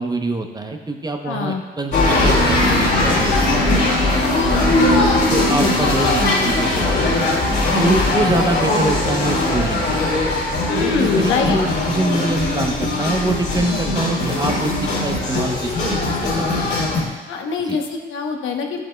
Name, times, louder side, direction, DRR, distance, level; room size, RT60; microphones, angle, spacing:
voice 1, 0.0-3.9 4.6-4.8 5.3-7.3 7.8-10.0 10.8-16.8 17.7-17.8, right 2 dB, 20° right, 4 dB, 0.7 m, -25 dB
voice 2, 1.2-1.6 4.5-5.0 5.3-5.7 10.6-11.6 17.3-18.8, left 5 dB, 85° left, 3 dB, 0.9 m, -24 dB
sound 1, 1.9-17.0, left 2 dB, 65° left, 2.3 m, -19 dB
10.0 x 7.5 x 2.2 m, 1.3 s
cardioid pair, 90°, 20 cm